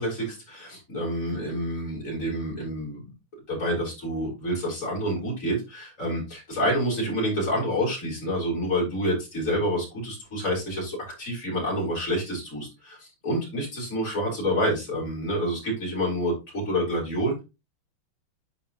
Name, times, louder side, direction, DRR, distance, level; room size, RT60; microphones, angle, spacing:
voice 1, 0.0-3.0 3.5-17.4, equal, 40° left, -4 dB, 4.9 m, -28 dB
9.2 x 5.9 x 3.0 m, 0.26 s
omnidirectional pair, 2.2 m